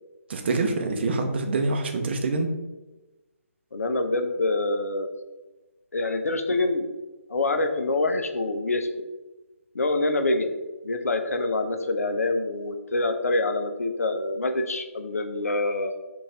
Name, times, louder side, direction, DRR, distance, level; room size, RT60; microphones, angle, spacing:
voice 1, 0.3-2.5, right 3 dB, 45° right, 5 dB, 0.6 m, -25 dB
voice 2, 3.7-5.1 5.9-6.9 7.3-8.9 9.7-10.5 10.8-16.0, left 2 dB, 70° left, 6 dB, 0.5 m, -26 dB
3.8 x 2.5 x 3.8 m, 1.1 s
figure-of-eight pair, 140°, 8 cm